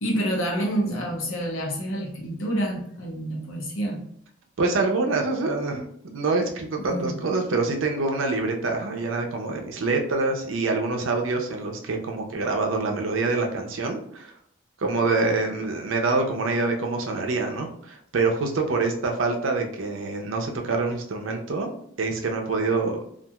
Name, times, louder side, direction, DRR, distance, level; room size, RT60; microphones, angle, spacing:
voice 1, 0.0-4.0 6.8-7.2, right 1 dB, 85° left, 0 dB, 0.8 m, -28 dB
voice 2, 4.6-5.9 6.1-14.3 14.8-21.7 22.0-23.0, right 3 dB, 85° right, 3 dB, 0.5 m, -25 dB
2.9 x 2.4 x 2.3 m, 0.69 s
head